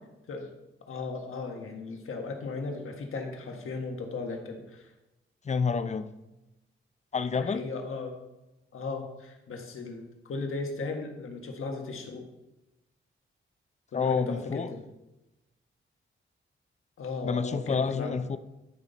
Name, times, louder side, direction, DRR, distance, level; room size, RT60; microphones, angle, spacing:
voice 1, 0.9-4.9 7.4-8.2 8.7-10.0 10.3-12.2 13.9-14.8 17.0-18.1, left 3 dB, 85° left, 3 dB, 1.5 m, -36 dB
voice 2, 5.4-6.1 7.1-7.6 13.9-14.7 17.2-18.4, left 5 dB, 35° left, 12 dB, 0.5 m, -28 dB
12.5 x 5.7 x 4.0 m, 0.99 s
wide cardioid pair, 115°, 21 cm